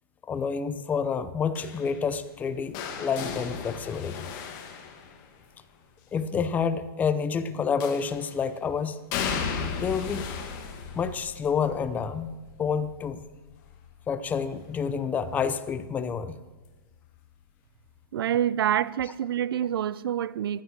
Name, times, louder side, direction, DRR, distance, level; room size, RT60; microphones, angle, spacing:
voice 1, 0.2-4.3 6.1-9.0 9.8-10.3 10.9-12.3 12.6-13.2 14.1-16.4, left 6 dB, 15° left, 0.6 m, -28 dB
sound 1, 1.5-5.6 7.8-8.4 9.1-14.9 15.3-15.7 16.9-17.0, left 6 dB, 35° left, 2.2 m, -36 dB
voice 2, 18.1-20.6, right 10 dB, 70° right, 0.6 m, -27 dB
16.0 x 12.0 x 6.1 m
hypercardioid pair, 155°, 13 cm